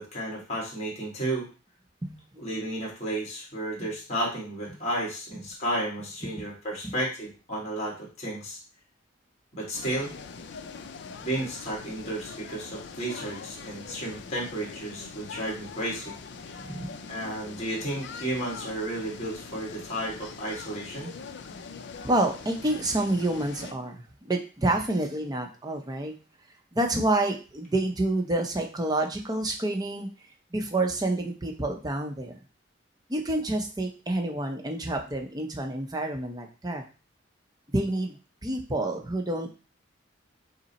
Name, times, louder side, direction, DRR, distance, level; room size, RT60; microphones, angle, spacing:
voice 1, 0.0-1.5 2.4-8.6 9.6-10.1 11.2-16.1 17.1-21.1, right 1 dB, 35° left, -4 dB, 1.6 m, -32 dB
voice 2, 2.0-2.7 3.8-3.9 4.7-4.8 6.2-6.3 6.8-6.9 16.6-16.9 22.0-26.1 26.7-30.1 30.5-32.4 33.1-36.8 37.7-38.2 38.4-39.6, right 2 dB, 20° right, 3 dB, 0.6 m, -28 dB
sound 1, 9.7-23.7, left 5 dB, 60° left, 0.4 m, -43 dB
5.3 x 2.0 x 4.0 m, 0.34 s
head